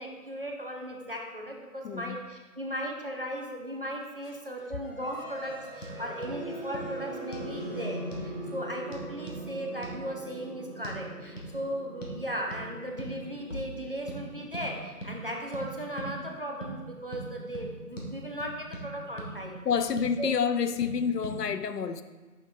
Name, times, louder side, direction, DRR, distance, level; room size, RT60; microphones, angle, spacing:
voice 1, 0.0-19.6 20.2-20.3, equal, 35° right, 0.6 m, -37 dB
voice 2, 1.8-2.2 19.6-22.0, left 6 dB, 85° left, 0.6 m, -28 dB
sound 1, 4.8-16.7, right 1 dB, 15° right, 1.7 m, -42 dB
sound 2, 5.8-6.0 6.2-6.4 6.7-6.9 7.3-7.5 8.1-8.3 8.9-9.4 9.8-10.0 10.8-11.0 11.4-11.5 12.0-12.2 12.5-12.7 13.0-13.2 13.5-13.7 14.1-14.2 14.5-14.7 15.0-15.1 15.5-15.7 16.0-16.1 16.6-16.7 17.1-17.3 17.5-17.7 18.0-18.1 18.4-18.9 19.2-19.3 19.7-20.1 20.8-20.9 21.2-21.4, right 1 dB, 55° left, 1.4 m, -39 dB
7.7 x 6.1 x 2.3 m
figure-of-eight pair, 165°, 47 cm